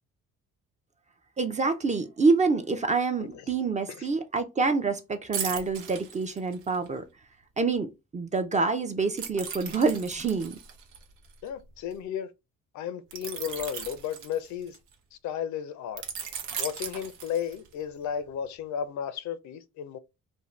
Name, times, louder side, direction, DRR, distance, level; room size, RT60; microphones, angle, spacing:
voice 1, 1.4-7.0 7.6-10.6, right 4 dB, 25° right, 0.4 m, -27 dB
sound 1, 5.3-6.9 9.2-11.9 13.1-14.9 16.0-17.8 18.2-18.4, right 7 dB, 80° right, 0.6 m, -38 dB
voice 2, 11.4-12.3 12.7-14.8 15.2-16.0 16.6-20.0, left 8 dB, 70° left, 0.5 m, -34 dB
2.6 x 2.1 x 3.1 m
cardioid pair, 90°, 30 cm